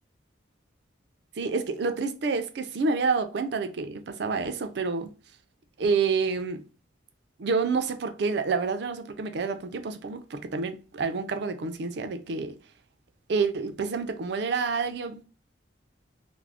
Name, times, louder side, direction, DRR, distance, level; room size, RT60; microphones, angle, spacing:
voice 1, 1.4-5.1 5.8-6.6 7.4-12.6 13.3-15.2, right 4 dB, 60° right, 0.4 m, -28 dB
2.4 x 2.0 x 3.3 m
head